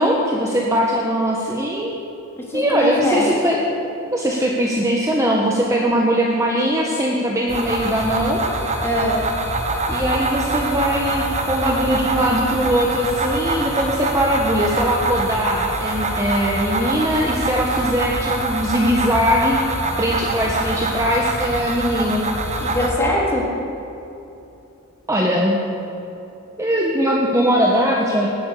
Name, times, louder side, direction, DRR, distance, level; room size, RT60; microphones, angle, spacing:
voice 1, 0.0-1.9 2.5-3.6 4.1-8.4 9.9-19.6 20.0-22.2 25.1-25.6 26.6-28.3, equal, 15° right, -2 dB, 1.3 m, -20 dB
voice 2, 2.4-3.3 8.8-9.2 22.6-23.4, equal, 10° left, -5 dB, 3.8 m, -22 dB
sound 1, 7.5-22.9, right 2 dB, 30° right, 1.4 m, -24 dB
19.0 x 8.9 x 8.4 m, 2.9 s
head